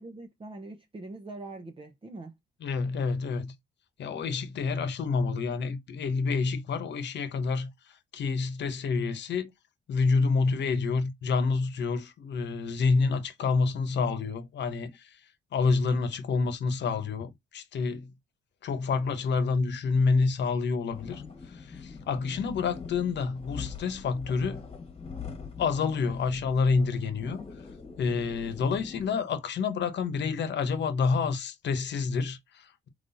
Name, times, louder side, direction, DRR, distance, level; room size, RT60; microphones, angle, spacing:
voice 1, 0.0-2.4, right 2 dB, 25° right, 0.9 m, -43 dB
voice 2, 2.6-3.5 4.0-7.7 8.1-9.5 9.9-15.2 15.5-18.1 18.6-21.2 21.5-24.6 25.6-27.4 28.0-32.9, left 4 dB, 65° left, 1.0 m, -28 dB
sound 1, 20.9-29.1, left 5 dB, 30° left, 1.4 m, -43 dB
4.1 x 3.2 x 4.0 m
cardioid pair, 90°, 20 cm